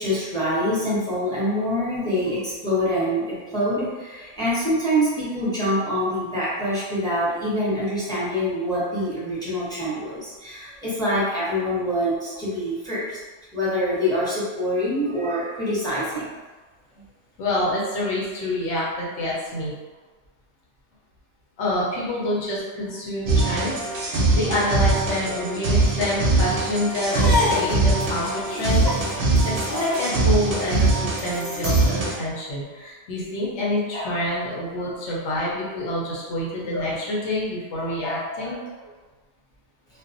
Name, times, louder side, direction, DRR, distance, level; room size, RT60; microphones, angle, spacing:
voice 1, 0.0-13.2 13.5-16.3, equal, 5° left, -10 dB, 0.6 m, -25 dB
voice 2, 1.9-2.3 17.4-19.7 21.6-28.8 29.2-38.7, left 1 dB, 85° left, -5 dB, 1.0 m, -27 dB
sound 1, 23.3-32.1, right 3 dB, 60° right, 0.7 m, -22 dB
sound 2, 26.9-31.9, left 2 dB, 45° left, 0.7 m, -29 dB
2.4 x 2.0 x 2.5 m, 1.3 s
omnidirectional pair, 1.2 m